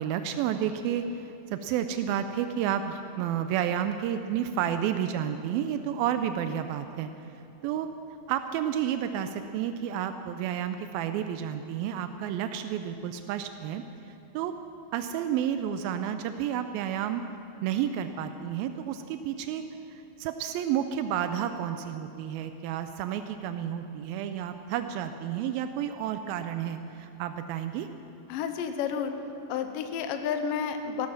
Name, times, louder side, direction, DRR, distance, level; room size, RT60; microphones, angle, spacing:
voice 1, 0.0-7.1 7.6-7.9 8.3-13.8 14.3-14.5 14.9-17.2 17.6-19.6 19.9-27.9, right 9 dB, 85° right, 9 dB, 2.4 m, -31 dB
voice 2, 28.3-29.1 29.5-31.1, left 7 dB, 75° left, 7 dB, 2.4 m, -30 dB
17.0 x 13.5 x 5.9 m, 2.8 s
omnidirectional pair, 4.2 m